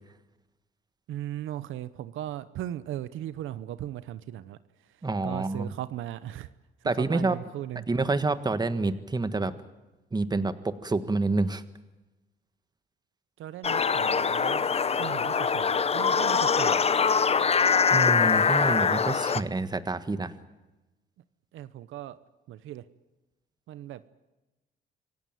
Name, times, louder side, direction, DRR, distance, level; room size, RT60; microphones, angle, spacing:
voice 1, 1.1-4.6 5.2-6.5 6.8-7.9 13.4-14.7 15.0-16.8 21.5-22.2 22.5-22.9 23.7-24.1, right 12 dB, 80° right, 14 dB, 0.8 m, -37 dB
voice 2, 5.0-5.7 6.8-7.4 7.9-9.5 10.1-11.6 17.9-20.3, right 3 dB, 20° right, 11 dB, 1.5 m, -28 dB
sound 1, 13.6-19.4, left 6 dB, 30° left, 0.7 m, -23 dB
26.5 x 17.0 x 9.2 m, 1.1 s
cardioid pair, 90°, 20 cm